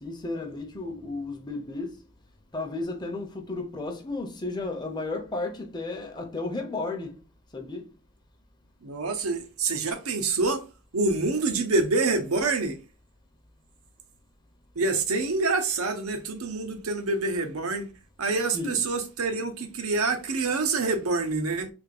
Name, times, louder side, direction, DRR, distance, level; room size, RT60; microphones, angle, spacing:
voice 1, 0.0-2.0 2.5-7.2 7.5-7.9 18.5-18.8, left 2 dB, 20° left, 0.6 m, -33 dB
voice 2, 8.8-10.6 10.9-12.8 14.8-17.9 18.2-21.7, right 3 dB, 90° right, 0.8 m, -26 dB
3.4 x 3.2 x 3.7 m
head